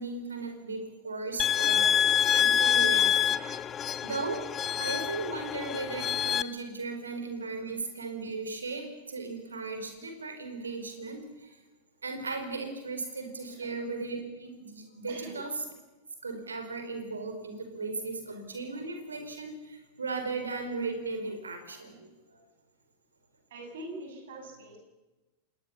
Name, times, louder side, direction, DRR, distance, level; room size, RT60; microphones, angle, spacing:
voice 1, 0.0-1.9 2.3-3.6 4.0-4.4 4.8-11.6 12.0-15.5 16.2-22.4, right 3 dB, 75° right, 6 dB, 4.8 m, -37 dB
sound 1, 1.4-6.4, left 9 dB, 25° left, 0.8 m, -26 dB
voice 2, 4.4-4.8 7.6-7.7 13.5-13.7 15.1-15.4 22.3-22.4 23.5-24.8, right 2 dB, 60° right, 3 dB, 6.8 m, -45 dB
27.5 x 20.0 x 7.1 m, 1.1 s
figure-of-eight pair, 90°, 0 cm